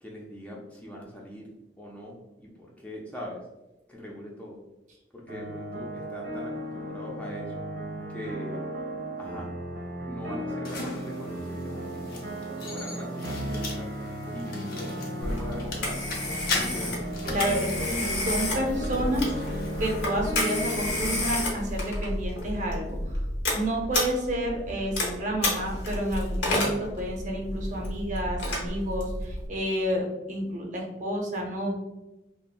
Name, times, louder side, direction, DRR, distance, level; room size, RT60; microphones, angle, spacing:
voice 1, 0.0-3.5 3.9-4.6 5.1-7.6 8.1-8.7 9.2-9.5 10.0-12.2 12.6-13.9 14.3-17.1, left 1 dB, 10° left, -3 dB, 0.3 m, -41 dB
sound 1, 5.3-21.2, equal, 85° right, 0.9 m, -35 dB
sound 2, 10.7-21.9, left 3 dB, 55° left, 0.6 m, -40 dB
Telephone, 15.2-29.5, left 1 dB, 80° left, 0.9 m, -31 dB
voice 2, 17.3-19.3 19.8-23.1 23.5-31.8, equal, 45° right, 0 dB, 0.6 m, -30 dB
2.9 x 2.5 x 2.2 m, 0.97 s
head